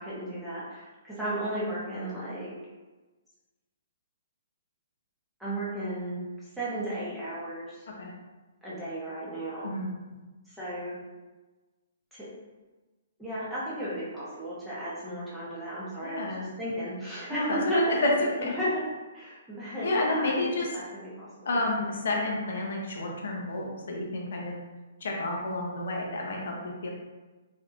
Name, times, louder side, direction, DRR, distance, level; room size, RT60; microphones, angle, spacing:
voice 1, 0.0-2.5 5.4-6.2 6.6-7.9 8.6-9.7 10.5-11.0 12.1-12.3 13.2-18.0 18.4-18.8 19.1-21.4, right 1 dB, 5° right, -11 dB, 0.8 m, -34 dB
voice 2, 16.0-16.5 17.3-18.5 19.8-20.7 21.4-24.6 25.0-26.9, left 1 dB, 65° left, -1 dB, 0.7 m, -29 dB
3.4 x 2.7 x 2.5 m, 1.2 s
hypercardioid pair, 165°, 0 cm